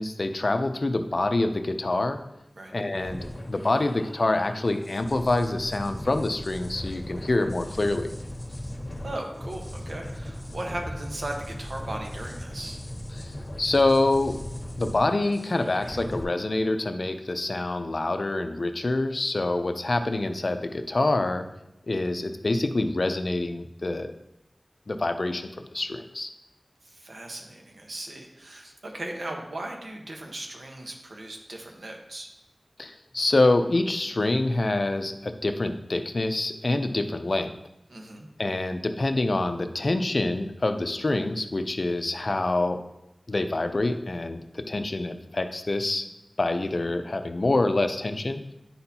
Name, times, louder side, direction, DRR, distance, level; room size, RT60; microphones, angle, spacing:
voice 1, 0.0-2.2 2.7-8.1 13.2-13.3 13.6-14.4 14.8-21.5 21.9-24.1 24.9-26.3 32.8-37.5 38.4-42.8 43.3-46.0 46.4-48.5, left 2 dB, 60° left, 7 dB, 0.5 m, -26 dB
sound 1, 2.9-16.2, left 1 dB, 40° left, 1.3 m, -38 dB
voice 2, 9.0-12.8 26.8-32.3 37.9-38.3, right 1 dB, 80° right, 2 dB, 1.0 m, -37 dB
9.6 x 4.3 x 2.8 m, 0.92 s
wide cardioid pair, 45°, 0 cm